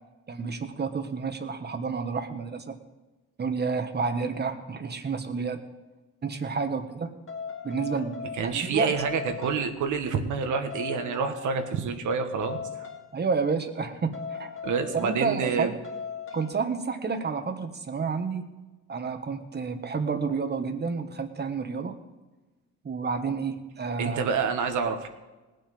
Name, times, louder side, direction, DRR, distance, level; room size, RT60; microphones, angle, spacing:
voice 1, 0.3-2.7 3.4-5.6 6.2-7.2 7.6-9.0 13.1-14.5 14.9-15.8 16.3-18.5 18.9-22.0 22.8-24.3, right 5 dB, 35° right, 8 dB, 1.5 m, -30 dB
sound 1, 7.3-8.7 9.0-9.9 10.7-12.0 12.4-13.2 14.1-15.5 15.8-16.5, left 6 dB, 45° left, 2.2 m, -38 dB
voice 2, 8.3-12.6 14.6-15.7 24.0-25.1, right 5 dB, 75° right, 6 dB, 1.6 m, -28 dB
19.0 x 7.9 x 5.3 m, 1.2 s
cardioid pair, 90°, 30 cm